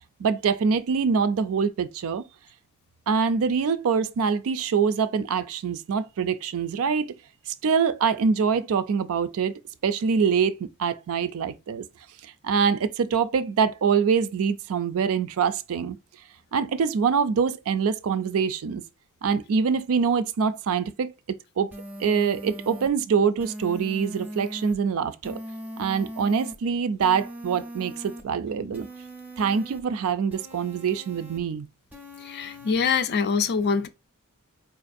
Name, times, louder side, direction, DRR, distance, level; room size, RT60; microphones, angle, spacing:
voice 1, 0.2-2.2 3.1-7.1 7.5-9.5 9.8-11.8 12.2-16.0 16.5-18.8 19.2-21.7 22.0-25.4 25.8-28.9 29.4-31.7, right 6 dB, 65° right, 0.4 m, -24 dB
sound 1, 21.7-22.9 23.4-24.7 25.2-26.5 27.0-28.2 28.7-29.8 30.3-31.4 31.9-32.7, equal, 10° right, 0.5 m, -40 dB
voice 2, 32.2-33.9, left 5 dB, 45° left, 0.4 m, -24 dB
4.5 x 2.5 x 2.5 m
head